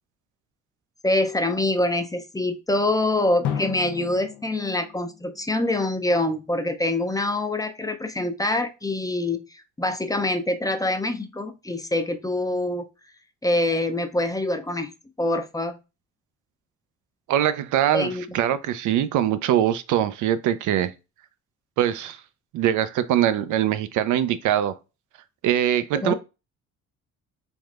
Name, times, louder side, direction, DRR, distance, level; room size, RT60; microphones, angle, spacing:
voice 1, 1.0-12.8 13.4-14.9 15.2-15.8 17.9-18.2 25.9-26.1, left 2 dB, 10° left, 0.4 m, -25 dB
Drum, 3.4-6.1, left 9 dB, 80° left, 0.7 m, -34 dB
voice 2, 17.3-20.9 21.8-22.2 22.5-24.7 25.4-26.1, right 11 dB, 80° right, 0.5 m, -22 dB
3.5 x 3.1 x 2.3 m
cardioid pair, 90°, 30 cm